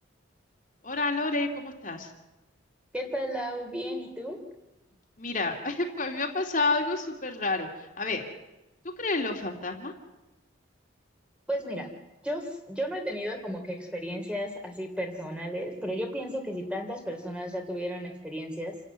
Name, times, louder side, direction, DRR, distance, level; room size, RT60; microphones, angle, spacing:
voice 1, 0.8-2.1 5.2-8.2 9.0-9.9, left 3 dB, 40° left, 2 dB, 2.6 m, -29 dB
voice 2, 2.9-4.4 11.5-11.9 12.2-18.7, equal, 5° right, 3 dB, 3.2 m, -33 dB
28.5 x 12.5 x 9.5 m, 1.0 s
head